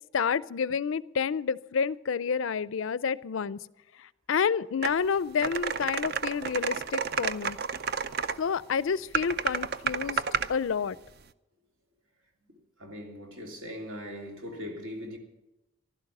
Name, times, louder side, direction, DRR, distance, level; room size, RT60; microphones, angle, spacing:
voice 1, 0.1-3.6 4.3-7.6 8.4-10.2 10.5-11.0, left 6 dB, 75° left, 0.4 m, -29 dB
sound 1, 4.8-4.9 5.4-8.4 9.1-10.5, right 6 dB, 50° right, 0.5 m, -31 dB
voice 2, 12.5-15.2, equal, 75° right, 3.2 m, -40 dB
15.5 x 12.0 x 6.0 m
head